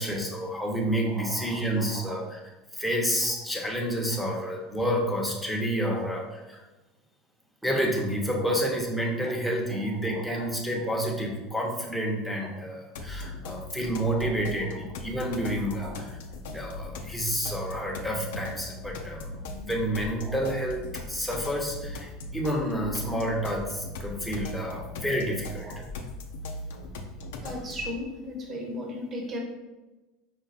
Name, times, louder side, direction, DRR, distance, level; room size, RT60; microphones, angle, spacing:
voice 1, 0.0-2.4 2.7-6.2 6.5-6.6 7.6-16.1 16.5-25.8, equal, ahead, -2 dB, 0.9 m, -29 dB
voice 2, 1.1-2.2 4.1-4.4 5.8-6.1 8.3-8.6 9.2-9.3 9.7-10.5 10.7-10.9 12.4-12.5 14.1-14.3 14.6-14.8 15.7-16.0 17.5-17.6 19.6-19.7 20.2-20.5 23.0-23.4 24.7-24.8 25.6-25.8 27.4-29.4, equal, 30° right, 0 dB, 1.0 m, -39 dB
sound 1, 12.9-27.9, left 2 dB, 85° left, 0.5 m, -39 dB
5.1 x 2.2 x 4.1 m, 1.1 s
supercardioid pair, 115°, 0 cm